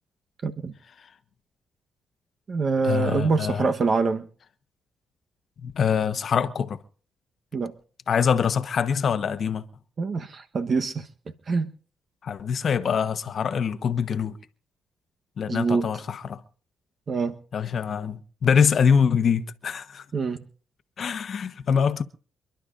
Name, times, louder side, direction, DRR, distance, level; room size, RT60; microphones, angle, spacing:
voice 1, 0.4-0.7 2.5-4.3 7.5-7.7 10.0-11.1 11.5-11.7 15.5-15.9 17.1-17.4 20.1-20.4, right 4 dB, 45° right, 1.1 m, -25 dB
voice 2, 2.8-3.7 5.6-6.8 8.1-9.6 12.2-14.4 15.4-16.4 17.5-20.0 21.0-22.0, left 7 dB, 50° left, 1.1 m, -24 dB
28.0 x 11.5 x 2.5 m
cardioid pair, 90°, 0 cm